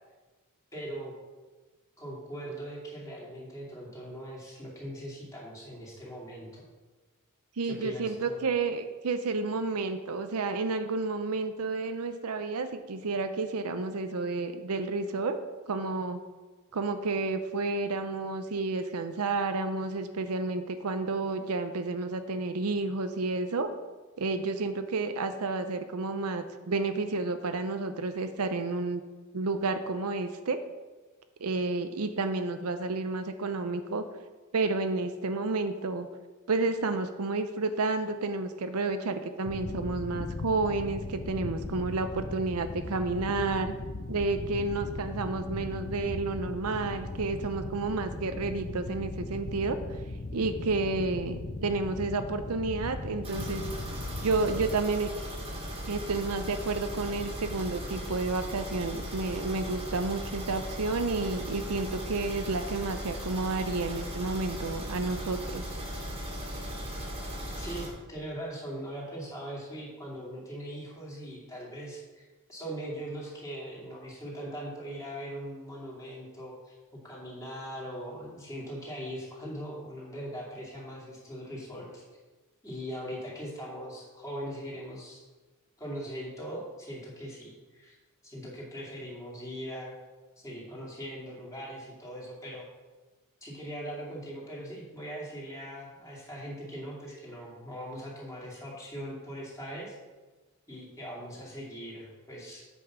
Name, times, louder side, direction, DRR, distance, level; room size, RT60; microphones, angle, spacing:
voice 1, 0.7-1.1 2.0-6.6 7.6-8.4 67.6-72.2 72.5-76.8 77.0-82.0 82.6-85.2 85.8-87.9 88.2-89.9 90.4-92.7 93.4-100.0 100.7-102.6, equal, 15° left, -4 dB, 2.5 m, -40 dB
voice 2, 7.6-15.4 15.7-16.2 16.7-23.7 24.2-29.0 29.3-30.6 31.4-34.0 34.5-36.1 36.5-43.7 44.1-49.8 50.3-53.6 54.2-55.1 55.9-65.6, right 3 dB, 75° right, 9 dB, 0.6 m, -31 dB
sound 1, 39.4-54.8, left 2 dB, 40° left, 0.5 m, -38 dB
sound 2, 53.2-67.9, equal, 25° right, 1.8 m, -38 dB
8.3 x 5.4 x 5.9 m, 1.3 s
head